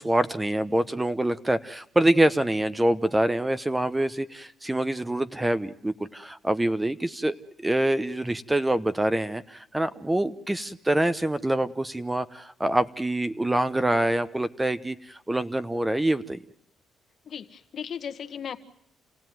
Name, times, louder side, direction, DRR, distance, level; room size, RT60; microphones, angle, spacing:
voice 1, 0.0-7.4 7.6-16.4, right 1 dB, 10° right, 13 dB, 1.0 m, -25 dB
voice 2, 17.3-18.6, left 8 dB, 55° left, 8 dB, 1.5 m, -36 dB
28.5 x 16.5 x 9.4 m, 0.70 s
cardioid pair, 90°, 0 cm